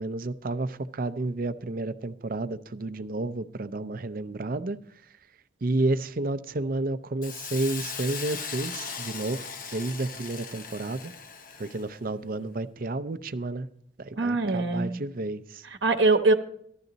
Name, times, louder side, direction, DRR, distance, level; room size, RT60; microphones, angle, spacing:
voice 1, 0.0-4.8 5.6-11.1 11.6-13.7 14.0-15.6, right 2 dB, 50° right, 12 dB, 0.6 m, -31 dB
Hiss, 7.2-11.9, left 6 dB, 50° left, 0.9 m, -38 dB
voice 2, 14.2-15.0 15.8-16.3, right 3 dB, 70° right, 6 dB, 1.0 m, -22 dB
13.5 x 12.0 x 4.0 m, 0.66 s
head